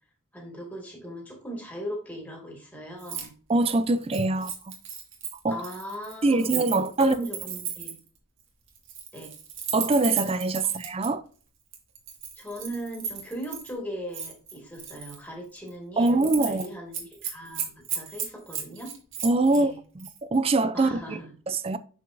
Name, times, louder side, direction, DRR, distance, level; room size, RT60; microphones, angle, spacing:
voice 1, 0.3-3.3 5.5-6.5 6.8-8.0 9.1-9.3 12.4-18.9 19.5-19.8 20.7-21.3, right 1 dB, 5° left, 2.0 m, -38 dB
Keys jangling, 3.0-3.3 3.6-8.1 8.8-11.1 11.7-13.7 14.1-15.2 15.6-15.7 16.0-16.7 16.9-19.6 20.0-20.2, right 8 dB, 60° right, 1.9 m, -35 dB
voice 2, 3.5-4.7 5.4-5.6 6.2-7.2 9.7-11.2 16.0-16.7 19.2-21.2 21.5-21.8, right 2 dB, 25° right, 0.3 m, -24 dB
6.7 x 6.2 x 2.6 m
head